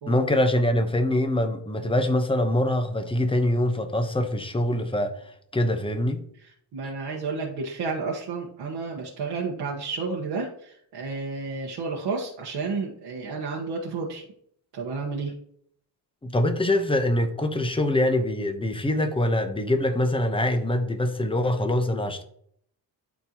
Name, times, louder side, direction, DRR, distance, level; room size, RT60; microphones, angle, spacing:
voice 1, 0.1-5.1 5.5-6.2 16.2-22.2, left 1 dB, 15° left, 1.0 m, -24 dB
voice 2, 6.7-14.2 14.7-15.3, right 4 dB, 90° right, 1.5 m, -31 dB
12.0 x 4.6 x 3.0 m
cardioid pair, 125°, 42 cm